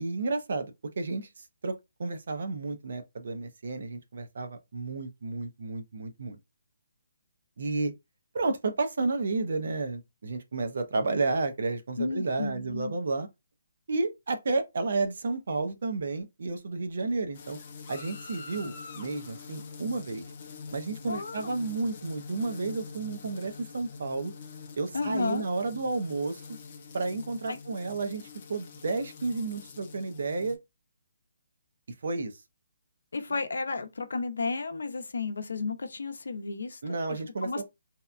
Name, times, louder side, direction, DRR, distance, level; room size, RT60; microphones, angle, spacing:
voice 1, 0.0-6.4 7.6-7.9 8.3-13.3 13.9-17.6 17.9-20.2 20.7-24.3 24.8-26.4 26.9-30.6 32.0-32.3 36.8-37.6, right 3 dB, 50° right, 0.5 m, -31 dB
voice 2, 12.0-13.0 21.1-21.6 24.9-25.4 27.5-27.6 33.1-37.0 37.4-37.6, left 4 dB, 80° left, 0.6 m, -33 dB
sound 1, 17.3-30.6, left 5 dB, 30° left, 0.5 m, -45 dB
2.7 x 2.2 x 2.4 m
hypercardioid pair, 175°, 0 cm